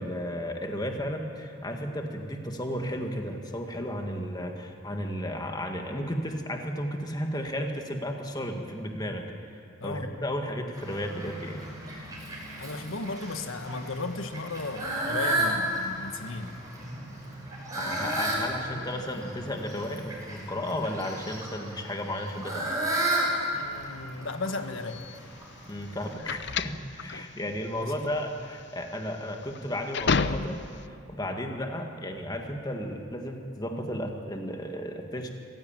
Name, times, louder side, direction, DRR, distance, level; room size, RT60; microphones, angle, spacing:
voice 1, 0.0-9.3 9.8-11.6 17.7-22.6 25.7-30.6 31.1-35.3, equal, 20° left, 3 dB, 1.9 m, -33 dB
voice 2, 9.8-10.1 12.6-16.6 23.5-25.0 27.8-28.2, left 3 dB, 75° left, 8 dB, 1.4 m, -35 dB
Fowl, 10.7-26.1, right 1 dB, 15° right, 5.9 m, -33 dB
sound 1, 24.9-30.9, left 4 dB, 55° left, 0.7 m, -31 dB
25.0 x 16.0 x 9.0 m, 2.4 s
head